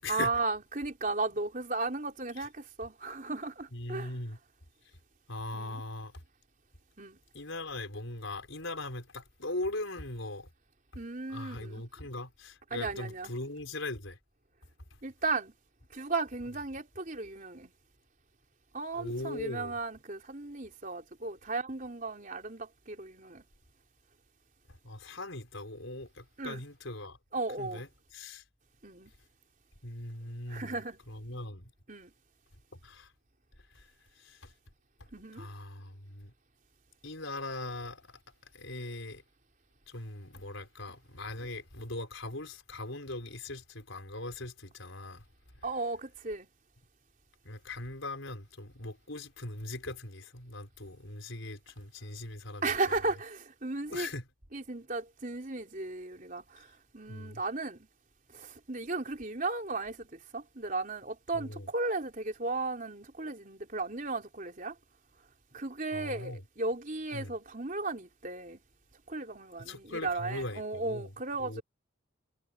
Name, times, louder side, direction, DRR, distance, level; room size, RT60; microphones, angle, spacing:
voice 1, 0.1-4.1 5.5-5.8 7.0-7.2 11.0-11.8 12.7-13.3 15.0-15.5 15.9-17.7 18.7-23.4 26.4-26.6 27.3-27.8 28.8-29.1 30.5-31.0 31.9-32.1 35.1-35.5 45.6-46.5 52.6-54.1 54.5-56.7 56.9-57.9 58.3-64.7 65.5-68.6 69.1-71.6, right 3 dB, 40° right, 4.0 m, -35 dB
voice 2, 3.7-4.4 5.3-6.1 7.3-10.5 11.3-14.2 18.9-19.8 24.8-27.2 27.6-28.4 29.8-30.8 31.1-31.7 32.8-33.1 33.7-33.9 34.2-34.5 35.3-36.3 37.0-38.2 38.5-39.2 39.9-45.2 47.4-52.9 53.9-54.3 57.1-57.4 61.3-61.7 65.9-66.4 67.1-67.3 69.6-71.1 71.4-71.6, left 2 dB, 70° left, 4.8 m, -40 dB
head